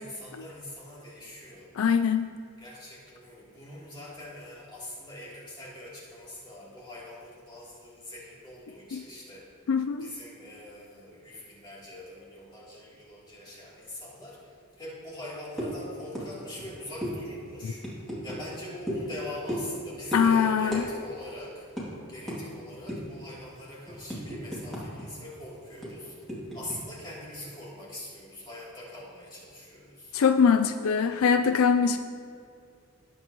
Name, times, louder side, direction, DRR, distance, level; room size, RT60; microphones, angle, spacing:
voice 1, 0.0-1.7 2.6-9.7 10.0-26.2 26.5-30.2, left 1 dB, 20° left, -7 dB, 3.0 m, -43 dB
voice 2, 1.7-2.3 8.9-9.0 9.7-10.1 17.6-17.7 20.1-20.9 30.1-32.0, left 6 dB, 75° left, 8 dB, 0.4 m, -23 dB
sound 1, 15.6-15.8 16.2-16.3 16.5-16.7 17.0-17.1 17.8-18.4 18.9-19.1 19.5-19.8 20.1-20.3 20.7-20.9 21.1-21.3 21.8-21.9 22.3-22.4 22.9-23.2 23.6-25.0 25.3-25.4 25.8-26.8, equal, ahead, 2.4 m, -34 dB
18.5 x 8.1 x 3.0 m, 2.3 s
head